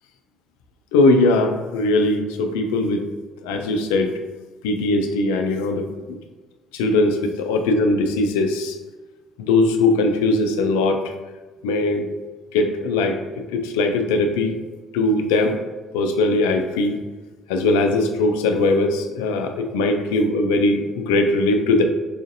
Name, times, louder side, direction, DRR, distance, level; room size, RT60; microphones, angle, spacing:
voice 1, 0.9-3.0 3.4-4.1 4.6-6.2 6.7-8.8 9.4-11.1 11.6-12.1 12.5-14.6 14.9-15.6 15.9-17.0 17.5-21.8, left 2 dB, 80° left, 5 dB, 0.3 m, -20 dB
4.7 x 2.5 x 2.5 m, 1.2 s
hypercardioid pair, 55°, 0 cm